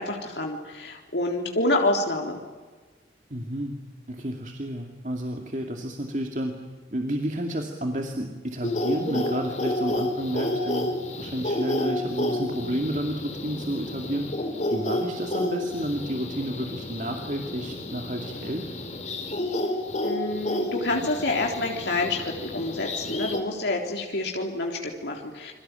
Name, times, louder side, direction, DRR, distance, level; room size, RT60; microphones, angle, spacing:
voice 1, 0.0-2.4 20.0-25.5, left 2 dB, 75° left, 1 dB, 3.5 m, -28 dB
voice 2, 3.3-3.8 4.1-6.6 6.9-14.3 14.7-18.7, right 1 dB, 45° right, 3 dB, 2.5 m, -31 dB
sound 1, 8.6-23.4, left 1 dB, 40° left, 4.0 m, -30 dB
28.5 x 23.0 x 9.1 m, 1.3 s
head